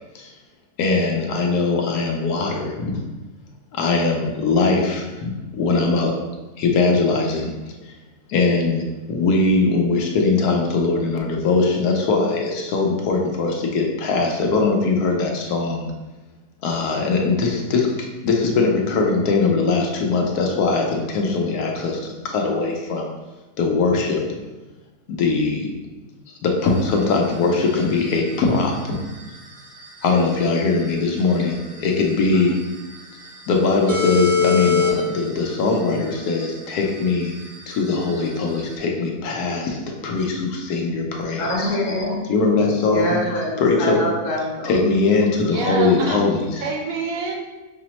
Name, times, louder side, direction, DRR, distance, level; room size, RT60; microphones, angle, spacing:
voice 1, 0.8-3.0 3.7-6.2 6.6-7.5 7.8-8.0 8.3-15.9 16.6-23.1 23.6-24.4 25.1-25.7 26.3-29.0 30.0-32.6 33.5-37.4 37.7-41.8 42.3-43.2 43.6-44.0 44.6-46.7, left 3 dB, 85° left, 1 dB, 1.2 m, -21 dB
sound 1, 26.6-38.7, left 5 dB, 45° right, 0.6 m, -27 dB
voice 2, 41.4-42.2 42.5-42.6 42.9-44.8, left 1 dB, 60° left, -2 dB, 1.0 m, -24 dB
voice 3, 45.5-46.2 46.6-47.4, right 3 dB, 70° right, 0 dB, 1.0 m, -26 dB
5.7 x 2.0 x 2.9 m, 1.1 s
omnidirectional pair, 1.6 m